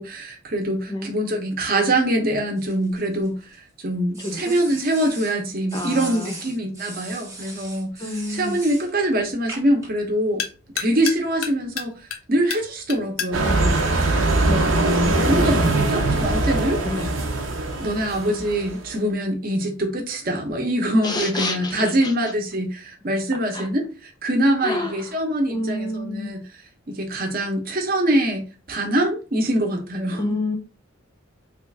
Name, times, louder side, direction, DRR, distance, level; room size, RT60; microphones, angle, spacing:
voice 1, 0.0-7.9 8.3-10.4 10.7-11.9 12.3-13.8 15.2-16.8 17.8-26.4 26.9-30.2, right 1 dB, 45° right, 0.8 m, -24 dB
sound 1, 2.6-3.6 4.1-5.4 5.7-8.9 9.5-9.9, right 2 dB, 15° right, 0.8 m, -39 dB
voice 2, 4.2-4.6 5.7-6.3 8.0-8.6 14.4-15.9 16.8-17.1 21.0-22.1 23.5-23.7 24.6-25.0 25.5-26.3 30.1-30.6, left 2 dB, 20° left, 0.5 m, -29 dB
sound 2, 7.3-14.9, left 8 dB, 85° left, 0.6 m, -36 dB
sound 3, 13.3-18.9, right 2 dB, 75° right, 0.7 m, -21 dB
3.2 x 2.4 x 3.2 m
head